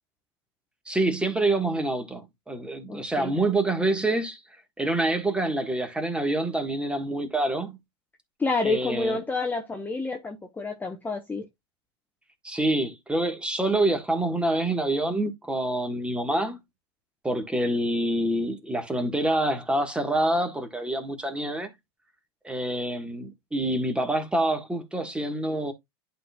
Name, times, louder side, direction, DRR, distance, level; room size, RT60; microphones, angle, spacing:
voice 1, 0.9-4.4 4.8-7.8 8.6-9.2 12.4-16.6 17.2-21.7 22.4-25.7, right 1 dB, 5° right, 1.4 m, -26 dB
voice 2, 2.9-3.3 8.4-11.4, left 3 dB, 10° left, 0.9 m, -29 dB
11.0 x 3.9 x 2.3 m
hypercardioid pair, 105°, 14 cm